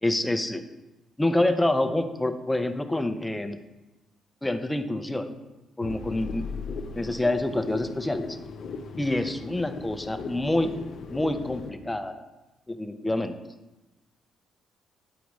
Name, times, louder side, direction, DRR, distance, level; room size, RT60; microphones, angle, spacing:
voice 1, 0.0-0.6 1.2-3.6 4.4-5.4 5.8-6.5 7.0-8.4 9.0-10.8 11.1-12.2 12.7-13.3, left 1 dB, 10° left, 8 dB, 0.5 m, -27 dB
sound 1, 5.8-11.7, left 5 dB, 60° left, 0.6 m, -38 dB
8.2 x 4.9 x 3.0 m, 1.0 s
cardioid pair, 100°, 0 cm